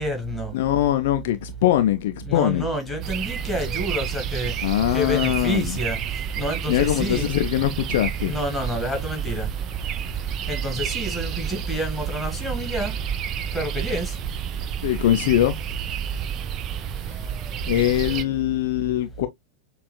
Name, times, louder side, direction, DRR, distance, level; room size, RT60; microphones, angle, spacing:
voice 1, 0.0-0.5 2.2-4.5 4.9-6.0 6.4-7.3 8.2-9.5 10.5-12.9 13.5-14.2, equal, 5° left, 1.8 m, -28 dB
voice 2, 0.5-2.7 4.6-5.8 6.7-8.3 14.8-15.6 17.7-19.3, left 13 dB, 55° left, 0.4 m, -22 dB
sound 1, 3.0-18.2, right 8 dB, 35° right, 0.6 m, -30 dB
6.7 x 2.4 x 2.2 m
figure-of-eight pair, 90°, 0 cm